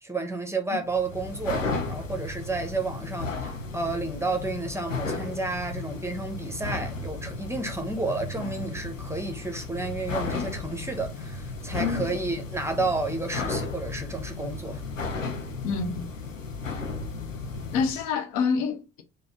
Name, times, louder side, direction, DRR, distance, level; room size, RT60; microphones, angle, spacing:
voice 1, 0.0-14.8, right 3 dB, 5° right, 0.9 m, -31 dB
sound 1, 0.9-18.1, left 3 dB, 85° left, 0.6 m, -34 dB
voice 2, 15.6-16.0 17.7-19.0, left 5 dB, 55° left, 0.8 m, -27 dB
4.1 x 2.4 x 4.4 m
figure-of-eight pair, 50°, 37 cm